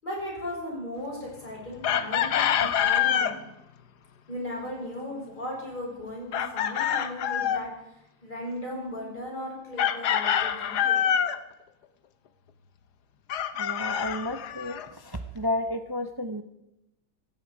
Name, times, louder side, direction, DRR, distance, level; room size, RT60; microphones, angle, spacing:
voice 1, 0.0-3.4 4.3-7.7 8.2-11.0, left 1 dB, 30° left, -3 dB, 6.5 m, -36 dB
Chicken rooster, 1.8-3.4 6.3-7.7 9.8-11.4 13.3-14.9, left 9 dB, 85° left, 1.4 m, -26 dB
voice 2, 13.6-16.4, left 1 dB, 25° right, 8 dB, 0.6 m, -32 dB
17.0 x 16.5 x 4.8 m, 0.90 s
omnidirectional pair, 1.7 m